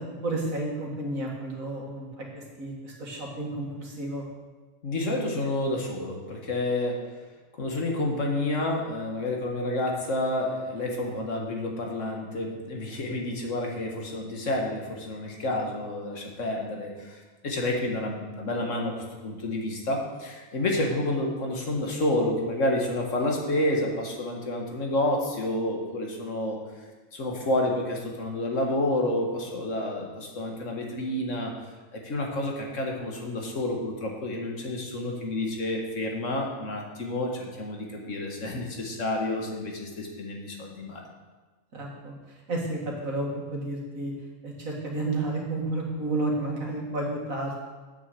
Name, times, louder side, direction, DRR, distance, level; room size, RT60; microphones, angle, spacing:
voice 1, 0.0-2.1 2.3-4.2 41.7-42.1 42.5-44.1 44.4-47.6, right 2 dB, 85° right, -1 dB, 2.3 m, -31 dB
voice 2, 4.8-7.0 7.6-26.6 27.1-31.5 31.9-41.1, left 1 dB, 65° left, 0 dB, 1.8 m, -29 dB
8.5 x 6.2 x 6.9 m, 1.3 s
omnidirectional pair, 1.4 m